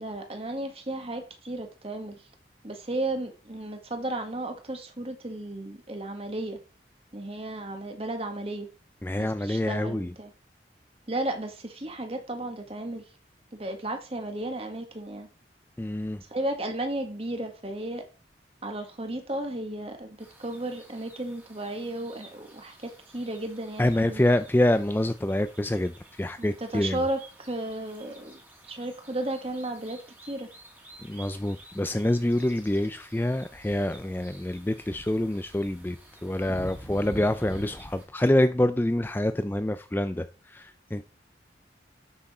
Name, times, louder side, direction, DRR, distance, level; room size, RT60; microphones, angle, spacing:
voice 1, 0.0-2.2 2.6-6.6 7.1-8.7 9.2-10.3 11.1-13.0 13.5-15.3 16.3-18.0 18.6-24.2 26.4-28.4 28.7-30.5, right 1 dB, 30° right, 1.7 m, -34 dB
voice 2, 9.0-10.1 15.8-16.2 23.8-27.0 31.1-41.0, left 1 dB, 10° left, 0.3 m, -26 dB
sound 1, 20.2-38.0, right 1 dB, 10° right, 2.1 m, -48 dB
9.7 x 6.3 x 4.2 m
head